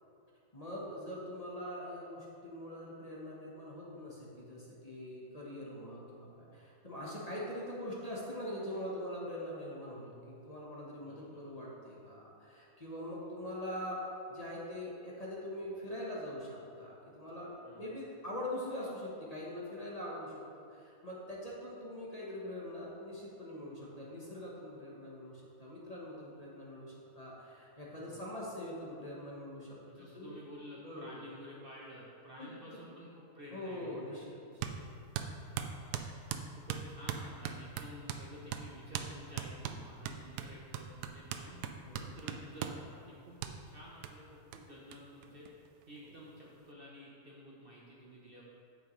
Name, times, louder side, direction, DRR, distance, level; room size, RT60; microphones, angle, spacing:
voice 1, 0.5-29.8 30.1-30.4 30.8-31.2 32.4-32.5 32.9-33.0 33.5-34.6 41.8-42.2 46.0-46.1, left 1 dB, 25° left, -6 dB, 1.1 m, -43 dB
voice 2, 11.0-11.4 17.7-18.0 27.9-28.3 29.8-34.4 35.4-41.6 42.0-45.5 45.9-48.4, equal, 45° right, -5 dB, 0.9 m, -52 dB
sound 1, 34.6-34.8 35.1-38.2 38.5-38.7 38.9-39.1 39.4-42.8 43.4-43.5 44.0-44.1 44.5-44.6 44.9-45.0 45.2-46.0, right 9 dB, 85° right, 1.1 m, -39 dB
8.9 x 7.2 x 3.2 m, 2.6 s
omnidirectional pair, 1.7 m